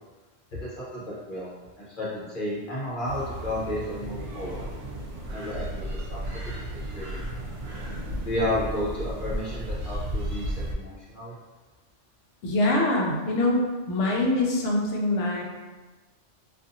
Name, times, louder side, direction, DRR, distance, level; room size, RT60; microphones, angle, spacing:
voice 1, 0.6-1.5 1.8-4.7 5.3-6.2 6.7-7.5 8.3-11.3, left 1 dB, 50° left, -8 dB, 1.0 m, -32 dB
sound 1, 3.0-10.7, right 1 dB, 75° right, 0.9 m, -34 dB
voice 2, 12.4-15.4, left 2 dB, 75° left, -1 dB, 0.9 m, -24 dB
2.6 x 2.5 x 2.6 m, 1.3 s
omnidirectional pair, 1.2 m